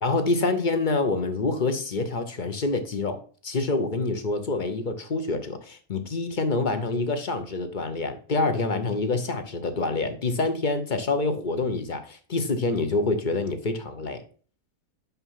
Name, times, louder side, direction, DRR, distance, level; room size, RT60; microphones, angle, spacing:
voice 1, 0.0-14.2, left 3 dB, 40° left, 0.8 m, -26 dB
5.8 x 5.6 x 5.6 m
omnidirectional pair, 1.6 m